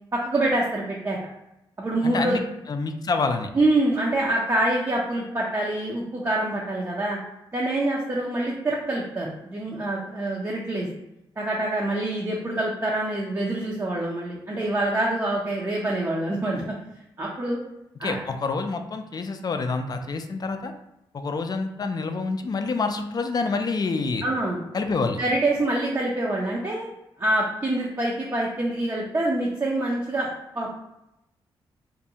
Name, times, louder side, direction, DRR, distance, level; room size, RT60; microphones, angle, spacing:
voice 1, 0.1-1.2 1.8-2.4 3.5-7.2 7.5-10.9 11.4-16.6 17.2-17.6 18.0-18.2 24.2-24.6 25.2-26.8 27.2-30.3 30.5-30.7, right 1 dB, 30° right, -3 dB, 0.5 m, -25 dB
voice 2, 2.0-2.4 2.7-3.5 18.0-20.7 21.1-24.2 24.7-25.2, left 4 dB, 40° left, 6 dB, 0.3 m, -27 dB
2.5 x 2.2 x 2.8 m, 0.88 s
cardioid pair, 60°, 10 cm